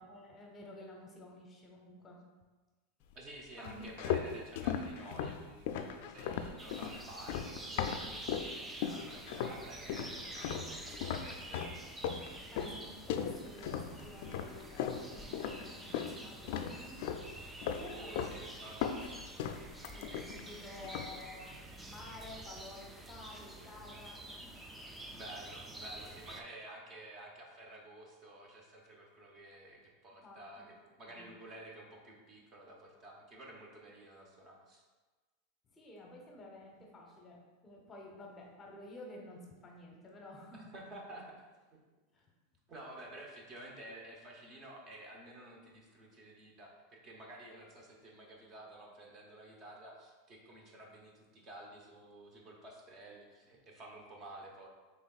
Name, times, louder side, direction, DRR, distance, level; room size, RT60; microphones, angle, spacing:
voice 1, 0.0-2.2 3.6-3.8 12.5-17.7 18.0-18.1 18.6-18.8 19.9-21.6 21.8-24.6 30.2-30.7 31.1-31.3 35.7-40.7 42.1-42.3, left 1 dB, 20° left, 0 dB, 0.8 m, -52 dB
voice 2, 3.1-11.7 17.7-19.0 25.1-34.8 40.5-41.5 41.7-41.8 42.7-54.7, right 1 dB, 35° right, 0 dB, 0.9 m, -52 dB
sound 1, 3.6-8.5 8.8-9.6 9.9-16.2 16.5-17.3 17.6-18.4 18.6-20.5 20.8-21.2, left 8 dB, 65° left, 0.3 m, -37 dB
sound 2, 6.6-26.4, right 1 dB, 10° right, 0.4 m, -48 dB
5.9 x 3.5 x 2.4 m, 1.3 s
supercardioid pair, 140°, 0 cm